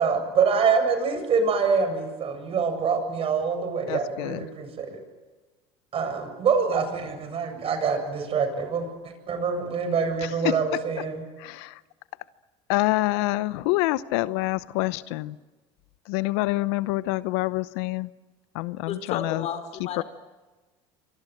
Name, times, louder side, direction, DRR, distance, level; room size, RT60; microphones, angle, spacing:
voice 1, 0.0-5.0 5.9-8.9 9.3-11.2, right 5 dB, 45° right, 7.9 m, -25 dB
voice 2, 3.9-4.4 10.4-10.6 11.4-11.7 12.7-15.3 16.1-18.1 18.5-19.5 20.0-20.1, left 19 dB, 80° left, 0.9 m, -26 dB
voice 3, 18.9-20.0, left 7 dB, 55° left, 4.7 m, -33 dB
27.5 x 25.0 x 8.0 m
supercardioid pair, 95°, 14 cm